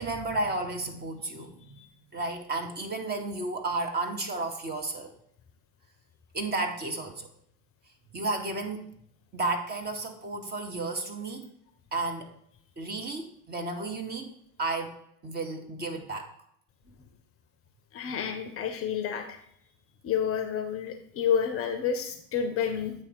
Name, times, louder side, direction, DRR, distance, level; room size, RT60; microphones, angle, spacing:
voice 1, 0.0-1.8 2.1-5.1 6.3-7.3 8.1-8.9 9.3-11.5 11.9-12.3 12.8-14.9 15.2-16.3, right 2 dB, 20° right, 4 dB, 0.8 m, -32 dB
voice 2, 17.9-19.4 20.0-22.9, left 7 dB, 30° left, 6 dB, 0.6 m, -29 dB
8.4 x 3.1 x 4.7 m, 0.70 s
figure-of-eight pair, 75°, 49 cm